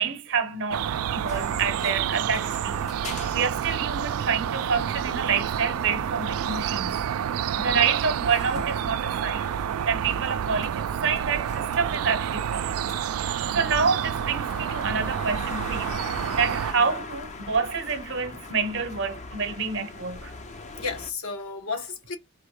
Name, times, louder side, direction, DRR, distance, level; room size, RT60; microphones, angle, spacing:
voice 1, 0.0-2.8 3.3-7.0 7.6-9.5 9.9-16.0 16.3-20.3, right 5 dB, 55° right, 0.8 m, -28 dB
sound 1, 0.7-16.7, right 9 dB, 80° right, 0.3 m, -29 dB
sound 2, 1.2-21.1, left 3 dB, 30° left, 0.6 m, -42 dB
voice 2, 20.8-22.2, left 4 dB, 75° left, 1.3 m, -34 dB
4.2 x 2.4 x 4.7 m
head